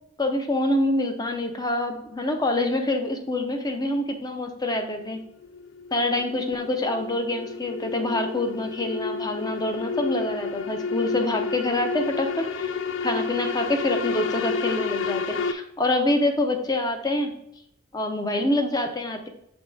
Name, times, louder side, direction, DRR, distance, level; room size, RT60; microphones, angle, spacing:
voice 1, 0.2-5.2 5.9-17.3 17.9-19.3, left 1 dB, 20° left, 5 dB, 0.7 m, -26 dB
sound 1, 5.0-15.5, left 4 dB, 60° left, 0.4 m, -30 dB
7.3 x 3.6 x 3.8 m, 0.77 s
head